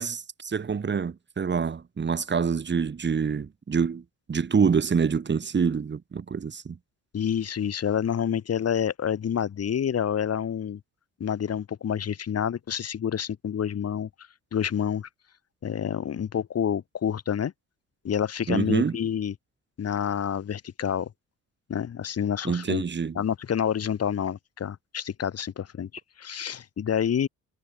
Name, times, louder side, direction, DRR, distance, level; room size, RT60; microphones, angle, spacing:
voice 1, 0.0-4.0 4.3-6.8 18.5-19.0 22.4-23.2, right 6 dB, 35° right, 3.1 m, -26 dB
voice 2, 7.1-10.8 11.2-14.1 14.5-15.1 15.6-17.5 18.0-19.3 19.8-21.1 21.7-22.8 23.2-25.9 26.2-27.3, left 8 dB, 55° left, 3.5 m, -28 dB
cardioid pair, 90°, 30 cm